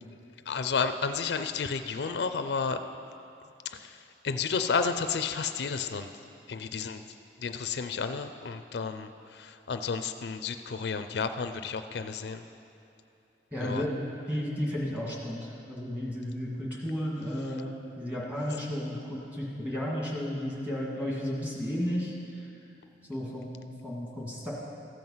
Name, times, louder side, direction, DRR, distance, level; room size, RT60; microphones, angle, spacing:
voice 1, 0.5-2.8 3.7-6.1 6.5-7.0 7.4-12.4 13.6-13.8, left 5 dB, 70° left, 9 dB, 0.4 m, -32 dB
voice 2, 13.5-22.1 23.1-24.5, equal, 10° right, -4 dB, 1.9 m, -33 dB
14.0 x 7.7 x 5.6 m, 2.8 s
head